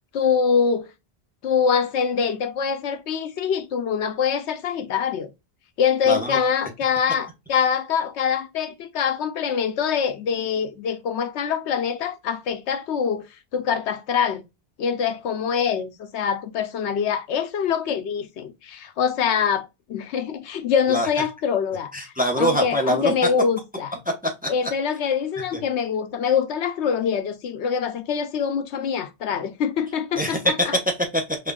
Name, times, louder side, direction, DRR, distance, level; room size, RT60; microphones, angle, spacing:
voice 1, 0.1-0.9 1.4-5.3 5.8-13.3 13.5-14.4 14.8-23.9 24.5-30.7, left 7 dB, 85° left, 1.0 m, -24 dB
voice 2, 6.1-6.4 20.9-21.1 21.9-23.1 24.1-24.5 30.2-31.4, equal, 10° right, 0.7 m, -23 dB
5.4 x 2.5 x 2.3 m
omnidirectional pair, 1.1 m